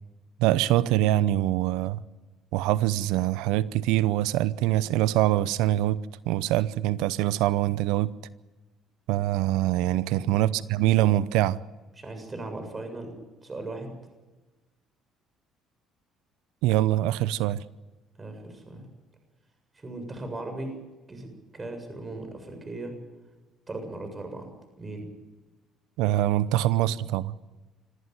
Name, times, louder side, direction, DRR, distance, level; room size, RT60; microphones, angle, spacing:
voice 1, 0.4-2.0 2.5-6.0 6.3-8.1 9.1-11.6 16.6-17.6 26.0-27.3, right 14 dB, 80° right, 0.7 m, -24 dB
voice 2, 12.0-13.1 13.4-13.9 18.2-18.9 19.7-20.8 21.1-23.0 23.7-24.5 24.8-25.1, right 2 dB, 30° right, 7.3 m, -38 dB
25.0 x 15.0 x 9.4 m
supercardioid pair, 65°, 0 cm